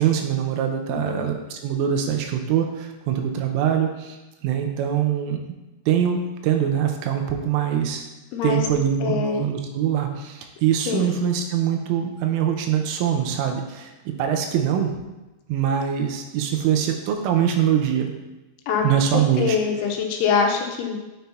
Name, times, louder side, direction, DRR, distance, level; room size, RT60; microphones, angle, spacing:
voice 1, 0.0-4.2 4.4-5.4 5.9-8.1 8.4-13.9 14.2-14.9 15.5-18.1 18.8-19.6, right 9 dB, 90° right, 4 dB, 3.4 m, -23 dB
voice 2, 0.9-1.2 8.3-8.6 9.0-9.4 10.9-11.1 18.7-18.8 19.1-21.0, left 6 dB, 80° left, 2 dB, 3.2 m, -24 dB
9.3 x 8.8 x 2.8 m, 1.1 s
omnidirectional pair, 5.7 m